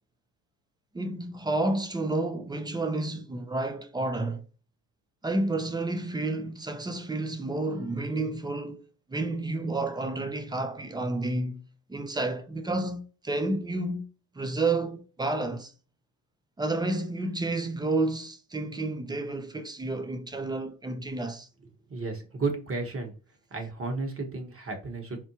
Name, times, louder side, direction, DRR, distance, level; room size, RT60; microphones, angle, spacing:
voice 1, 0.9-4.4 5.2-8.8 9.1-11.6 11.9-14.1 14.3-15.7 16.6-21.5, right 2 dB, 10° right, 0.3 m, -30 dB
voice 2, 21.9-23.1 23.5-25.2, right 3 dB, 25° right, 1.2 m, -33 dB
4.3 x 2.1 x 2.8 m
supercardioid pair, 90°, 49 cm